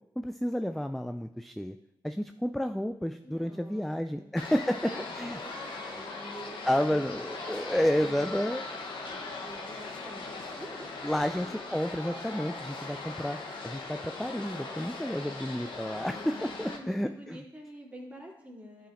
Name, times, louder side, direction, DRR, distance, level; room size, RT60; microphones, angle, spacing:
voice 1, 0.2-1.8 2.0-4.8 5.2-5.4 6.7-8.6 11.0-13.4 13.6-17.4, equal, ahead, 8 dB, 0.3 m, -31 dB
voice 2, 3.2-4.3 4.7-10.9 16.6-18.9, right 1 dB, 15° right, -3 dB, 2.3 m, -48 dB
sound 1, 4.4-16.8, left 3 dB, 75° left, 0.9 m, -40 dB
9.9 x 5.1 x 2.5 m, 0.83 s
cardioid pair, 50°, 9 cm